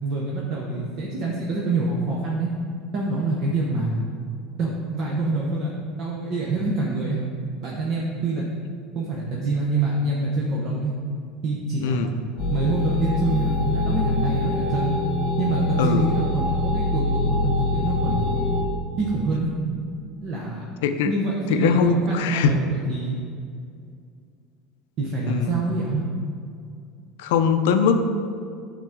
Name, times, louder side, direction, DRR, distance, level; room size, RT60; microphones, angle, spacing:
voice 1, 0.0-2.5 2.9-4.0 4.6-5.7 6.0-7.2 7.6-8.5 8.9-10.9 11.4-12.2 12.5-14.9 15.4-18.2 19.0-19.5 20.2-20.6 21.0-23.2 25.0-26.0, right 2 dB, 40° right, -4 dB, 0.8 m, -26 dB
voice 2, 11.8-12.1 15.8-16.1 20.8-21.1 21.5-22.5 25.3-25.5 27.2-28.0, left 6 dB, 90° left, 8 dB, 0.5 m, -21 dB
sound 1, 12.4-18.6, left 2 dB, 40° left, 0.9 m, -24 dB
9.0 x 3.8 x 3.6 m, 2.3 s
cardioid pair, 165°, 0 cm